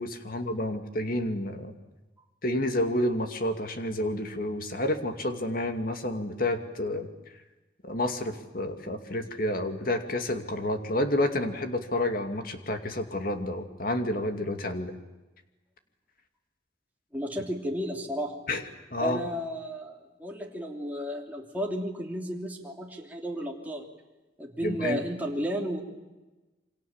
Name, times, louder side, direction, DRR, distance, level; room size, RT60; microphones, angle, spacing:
voice 1, 0.0-1.7 2.4-7.1 7.8-14.9 18.5-18.6 18.9-19.2 24.6-25.0, left 1 dB, 50° left, 7 dB, 2.5 m, -29 dB
voice 2, 17.1-18.3 19.0-23.8 24.4-25.8, equal, 10° right, -1 dB, 3.1 m, -33 dB
28.5 x 25.0 x 7.4 m, 1.1 s
head